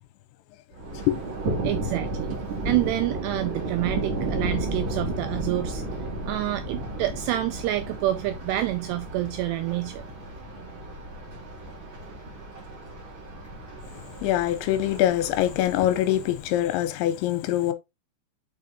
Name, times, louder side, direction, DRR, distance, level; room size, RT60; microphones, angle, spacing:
Thunder, 0.7-16.7, right 2 dB, 35° right, 2.7 m, -33 dB
voice 1, 1.6-2.3 2.7-5.8 6.3-10.0, right 15 dB, 85° right, 2.5 m, -28 dB
voice 2, 13.9-17.7, left 13 dB, 85° left, 3.1 m, -24 dB
6.4 x 5.0 x 4.1 m
omnidirectional pair, 5.4 m